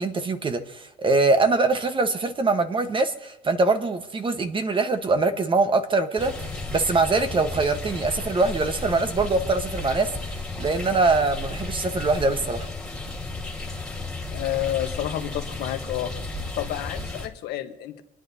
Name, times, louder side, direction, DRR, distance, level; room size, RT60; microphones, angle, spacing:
voice 1, 0.0-12.7, right 3 dB, 30° right, 1.2 m, -23 dB
sound 1, 6.2-17.3, left 3 dB, 5° left, 2.3 m, -33 dB
voice 2, 14.3-16.3 16.6-18.0, left 12 dB, 80° left, 1.3 m, -30 dB
28.0 x 9.9 x 2.8 m
cardioid pair, 110°, 17 cm